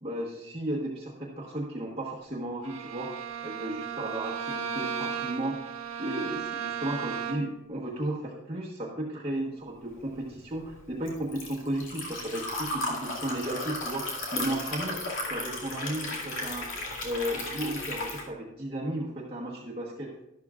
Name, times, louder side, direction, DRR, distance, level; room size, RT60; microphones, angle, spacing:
voice 1, 0.0-3.1 3.4-5.5 6.0-14.1 14.3-15.0 15.3-16.7 17.0-20.1, right 1 dB, 25° right, -5 dB, 1.2 m, -34 dB
Bowed string instrument, 2.6-7.6, right 7 dB, 80° right, 1.3 m, -35 dB
Liquid, 10.0-18.2, left 2 dB, 65° left, 2.3 m, -35 dB
12.0 x 12.0 x 2.4 m, 0.90 s
head